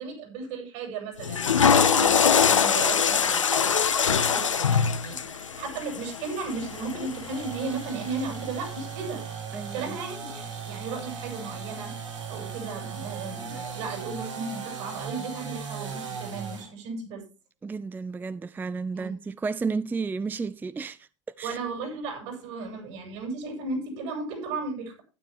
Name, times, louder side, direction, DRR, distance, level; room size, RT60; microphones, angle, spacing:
voice 1, 0.0-9.2 9.7-11.9 12.3-17.2 18.9-19.1 21.4-25.0, right 4 dB, 65° right, 7.6 m, -35 dB
Water / Toilet flush, 1.2-7.4, left 7 dB, 90° left, 1.0 m, -23 dB
sound 1, 6.4-16.7, right 6 dB, 85° right, 5.3 m, -38 dB
voice 2, 9.5-10.0 17.6-21.1 21.4-21.6, right 4 dB, 10° right, 0.4 m, -32 dB
12.5 x 10.5 x 3.5 m
hypercardioid pair, 85°, 16 cm